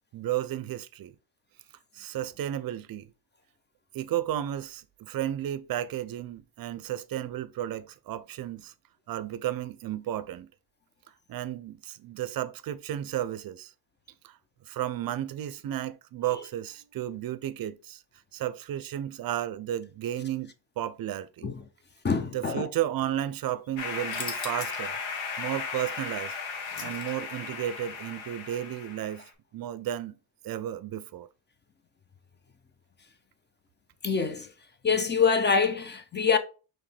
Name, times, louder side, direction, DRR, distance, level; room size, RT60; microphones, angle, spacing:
voice 1, 0.1-1.1 1.9-3.1 3.9-8.7 9.1-10.5 11.3-13.7 14.2-14.4 14.6-18.0 18.3-21.5 22.3-25.0 25.4-26.3 26.8-29.2 29.5-30.2 30.4-31.3, right 12 dB, 50° right, 0.5 m, -33 dB
voice 2, 22.0-22.7 34.0-34.5 34.8-36.4, left 5 dB, 25° left, 0.6 m, -25 dB
sound 1, 23.8-29.3, left 5 dB, 85° left, 1.2 m, -36 dB
sound 2, 24.0-25.0 25.4-25.5 26.1-27.5, left 4 dB, 50° left, 1.4 m, -40 dB
5.0 x 3.1 x 3.3 m
cardioid pair, 110°, 45 cm